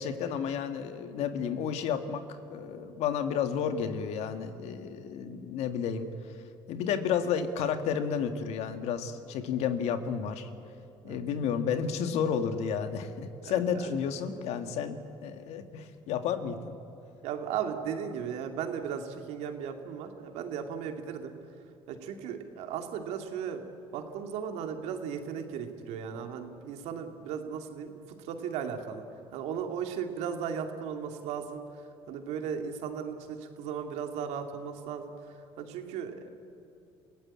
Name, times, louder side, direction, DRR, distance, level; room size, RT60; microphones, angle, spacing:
voice 1, 0.0-2.2 2.5-6.3 6.7-10.5 11.0-16.8, left 7 dB, 75° left, 8 dB, 1.8 m, -31 dB
voice 2, 13.4-14.0 17.2-21.3 21.9-23.6 23.9-29.0 29.3-36.3, right 7 dB, 80° right, 5 dB, 2.4 m, -36 dB
27.0 x 16.5 x 8.6 m, 2.7 s
supercardioid pair, 80°, 11 cm